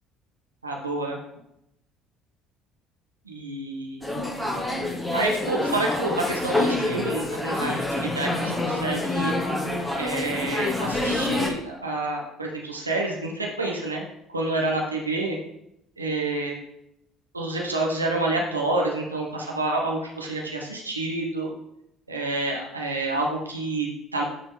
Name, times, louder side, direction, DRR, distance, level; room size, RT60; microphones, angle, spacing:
voice 1, 0.6-1.2 3.2-4.0 5.1-9.3 9.9-14.0 14.3-15.4 16.0-16.6 17.3-21.5 22.1-24.2, right 2 dB, 90° right, -1 dB, 0.9 m, -28 dB
sound 1, 4.0-11.5, left 2 dB, 15° left, 2.0 m, -27 dB
9.4 x 4.0 x 3.8 m, 0.80 s
figure-of-eight pair, 55°, 0 cm